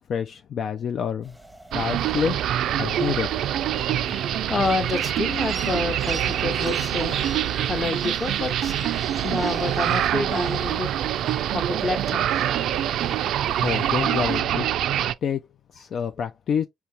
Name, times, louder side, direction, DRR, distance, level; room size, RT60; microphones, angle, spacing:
voice 1, 0.1-1.3 1.7-2.4 2.8-3.3 3.7-3.8 13.6-14.7 15.2-15.4 15.7-16.7, left 7 dB, 60° left, 0.4 m, -27 dB
sound 1, 1.2-14.4, right 1 dB, ahead, 0.8 m, -43 dB
sound 2, 1.7-15.1, right 11 dB, 80° right, 0.3 m, -25 dB
voice 2, 4.5-7.2 7.7-8.7 9.2-10.9 11.5-12.3, left 3 dB, 35° left, 1.0 m, -28 dB
4.4 x 2.8 x 3.3 m
cardioid pair, 90°, 0 cm